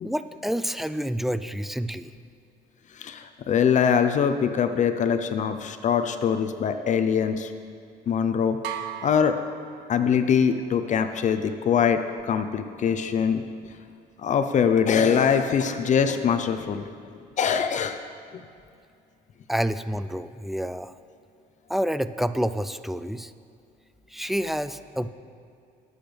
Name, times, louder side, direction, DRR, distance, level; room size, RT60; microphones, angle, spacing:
voice 1, 0.0-2.1 19.5-20.9 21.7-23.3 24.1-25.1, equal, ahead, 12 dB, 0.3 m, -28 dB
voice 2, 3.0-7.5 8.1-8.6 9.0-9.4 9.9-13.4 14.2-16.8 17.4-18.0 18.3-18.4, left 7 dB, 45° left, 8 dB, 0.7 m, -23 dB
sound 1, 8.6-10.4, right 10 dB, 85° right, 0.8 m, -37 dB
20.5 x 8.1 x 3.4 m, 2.4 s
cardioid pair, 110°, 17 cm